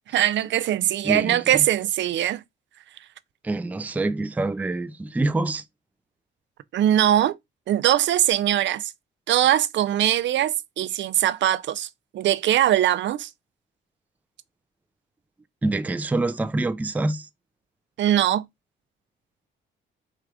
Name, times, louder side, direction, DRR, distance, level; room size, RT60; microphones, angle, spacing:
voice 1, 0.1-2.4 6.7-7.4 7.7-8.9 9.3-11.9 12.1-13.3 18.0-18.4, right 12 dB, 65° right, 0.5 m, -21 dB
voice 2, 1.0-1.7 3.4-5.6 15.6-17.3, right 2 dB, 10° right, 0.4 m, -26 dB
4.5 x 2.4 x 4.7 m
cardioid pair, 90°, 20 cm